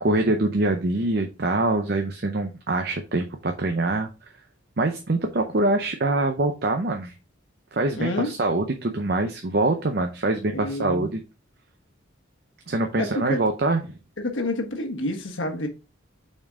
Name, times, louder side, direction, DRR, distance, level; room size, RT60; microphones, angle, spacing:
voice 1, 0.0-4.1 4.8-7.1 7.7-11.2 12.7-13.9, right 2 dB, 50° right, 0.7 m, -24 dB
voice 2, 8.0-8.4 10.5-11.1 13.0-13.4 14.2-15.7, left 1 dB, 70° left, 1.2 m, -28 dB
5.8 x 4.5 x 3.6 m
head